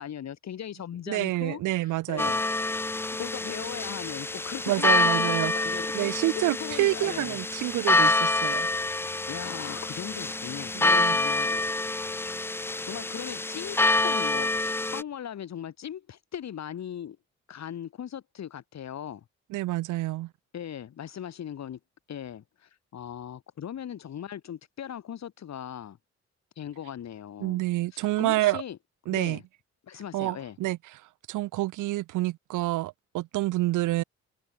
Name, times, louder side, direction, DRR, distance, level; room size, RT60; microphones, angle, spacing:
voice 1, 0.0-2.4 3.2-7.4 9.3-11.8 12.8-17.2 17.5-19.2 20.5-21.8 22.1-26.0 26.6-27.7 27.9-28.8 29.1-29.4 29.9-30.6, left 9 dB, 60° left, 7.0 m, -39 dB
voice 2, 1.1-2.3 4.7-5.5 5.9-8.7 10.7-11.2 19.5-20.3 27.4-28.6 29.1-29.4 30.1-31.0 31.3-34.0, right 17 dB, 80° right, 0.7 m, -28 dB
sound 1, 2.2-15.0, left 2 dB, 10° left, 0.4 m, -27 dB
cardioid pair, 90°, 30 cm